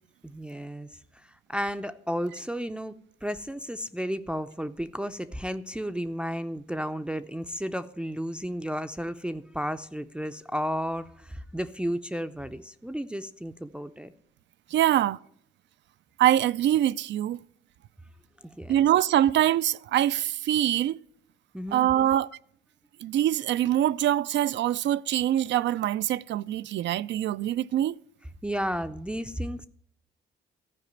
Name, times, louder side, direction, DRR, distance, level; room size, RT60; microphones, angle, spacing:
voice 1, 0.2-0.9 1.5-14.1 18.4-18.8 21.5-22.2 28.4-29.7, equal, 5° right, 0.5 m, -33 dB
voice 2, 14.7-15.2 16.2-17.4 18.7-21.0 21.7-22.3 23.0-28.0, right 12 dB, 65° right, 0.4 m, -24 dB
14.0 x 4.9 x 9.3 m
cardioid pair, 90°, 20 cm